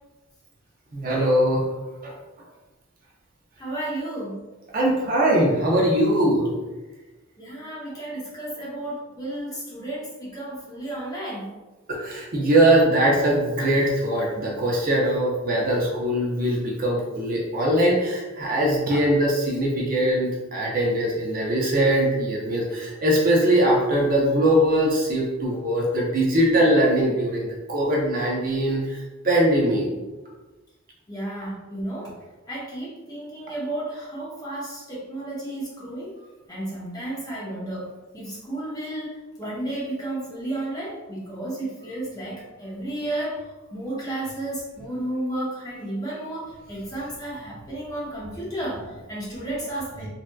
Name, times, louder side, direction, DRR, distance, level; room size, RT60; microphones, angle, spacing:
voice 1, 0.9-1.6 2.0-2.1 4.7-6.5 11.9-29.0 29.2-29.9, right 1 dB, 40° right, -3 dB, 0.6 m, -21 dB
voice 2, 3.6-4.4 7.4-11.5 31.1-32.1 32.5-36.2 36.5-50.1, right 1 dB, 20° left, -6 dB, 0.8 m, -32 dB
3.2 x 2.7 x 2.2 m, 1.2 s
head